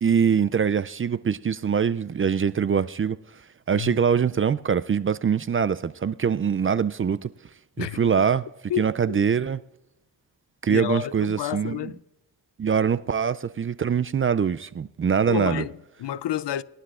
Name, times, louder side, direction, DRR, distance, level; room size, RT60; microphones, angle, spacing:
voice 1, 0.0-3.2 3.7-7.3 7.8-8.4 8.8-9.6 10.6-11.9 12.6-15.6, right 7 dB, 30° right, 0.4 m, -23 dB
voice 2, 7.8-8.2 8.7-9.2 10.7-12.0 15.3-16.6, left 12 dB, 75° left, 0.6 m, -30 dB
21.0 x 11.5 x 2.5 m
cardioid pair, 50°, 42 cm